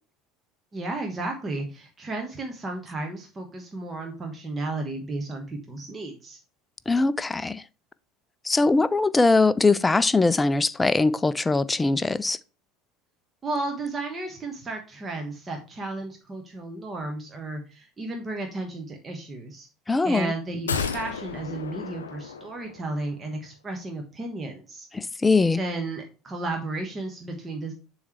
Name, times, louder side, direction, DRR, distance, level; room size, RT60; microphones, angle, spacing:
voice 1, 0.7-6.4 13.4-19.7 20.0-24.9 25.6-27.7, right 2 dB, 25° right, 1.2 m, -33 dB
voice 2, 6.9-7.6 8.4-12.4 19.9-20.3 24.9-25.6, left 3 dB, 15° left, 0.4 m, -21 dB
sound 1, 20.7-23.0 23.3-23.4, left 6 dB, 80° left, 0.5 m, -33 dB
7.1 x 3.2 x 4.5 m
figure-of-eight pair, 70°, 0 cm